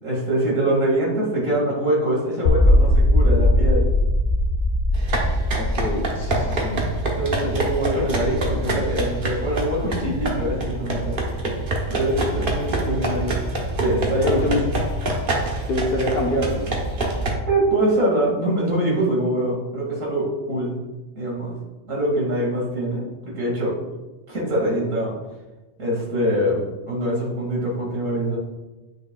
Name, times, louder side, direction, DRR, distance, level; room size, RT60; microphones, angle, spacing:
voice 1, 0.0-3.9 7.2-11.2 11.9-13.3 13.6-14.4 17.5-20.8 21.2-21.6 21.9-23.8 24.3-25.1 25.8-28.4, right 1 dB, 80° right, -4 dB, 2.5 m, -24 dB
sound 1, 2.5-8.5, left 1 dB, 85° left, 1.2 m, -20 dB
sound 2, 4.9-17.3, right 2 dB, 45° right, 1.1 m, -26 dB
voice 2, 5.6-6.8 14.2-14.6 15.7-16.7, left 1 dB, 55° left, 0 dB, 1.2 m, -25 dB
8.2 x 6.2 x 2.3 m, 1.1 s
omnidirectional pair, 1.3 m